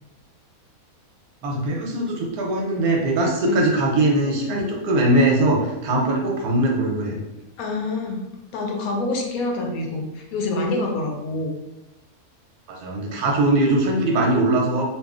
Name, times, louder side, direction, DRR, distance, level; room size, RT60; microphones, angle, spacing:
voice 1, 1.4-7.2 12.7-14.8, right 1 dB, 85° right, 0 dB, 1.1 m, -21 dB
voice 2, 7.6-8.2 8.5-11.6, left 2 dB, 80° left, 1 dB, 1.1 m, -26 dB
2.7 x 2.4 x 2.4 m, 0.94 s
omnidirectional pair, 1.5 m